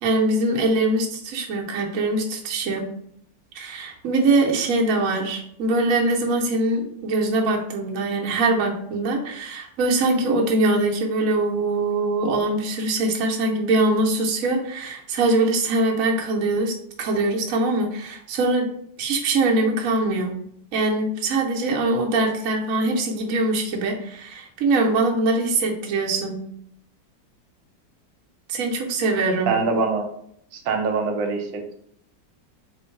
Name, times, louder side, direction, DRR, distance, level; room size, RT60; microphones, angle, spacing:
voice 1, 0.0-2.9 3.5-20.4 20.7-26.4 28.5-29.6, right 2 dB, 55° right, -1 dB, 1.0 m, -23 dB
voice 2, 29.5-30.1 30.5-31.8, right 4 dB, 80° right, 3 dB, 1.4 m, -24 dB
3.8 x 2.6 x 4.4 m, 0.70 s
omnidirectional pair, 2.0 m